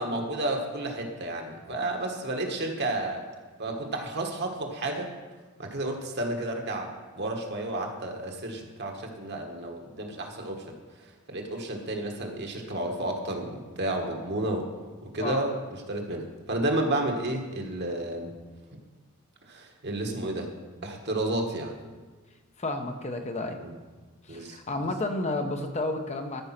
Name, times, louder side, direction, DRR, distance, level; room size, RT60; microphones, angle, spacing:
voice 1, 0.0-3.2 3.6-5.1 5.6-10.7 11.3-14.7 15.0-15.5 15.9-18.3 19.5-20.5 20.8-21.7 23.6-23.7 24.3-24.6, right 1 dB, 50° right, 2 dB, 1.5 m, -31 dB
voice 2, 22.6-23.6 24.2-26.4, left 2 dB, 30° left, 5 dB, 0.8 m, -31 dB
13.5 x 5.4 x 5.9 m, 1.3 s
head